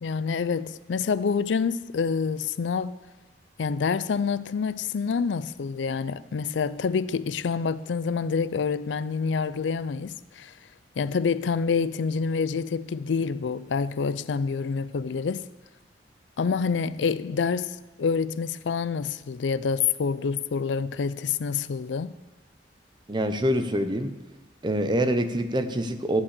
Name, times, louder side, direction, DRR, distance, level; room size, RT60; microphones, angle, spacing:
voice 1, 0.0-3.0 3.6-10.5 11.0-15.5 16.4-22.1, left 5 dB, 85° left, 0.4 m, -27 dB
voice 2, 23.1-24.1 24.6-26.2, right 1 dB, 25° right, 0.7 m, -25 dB
14.0 x 5.8 x 8.2 m
head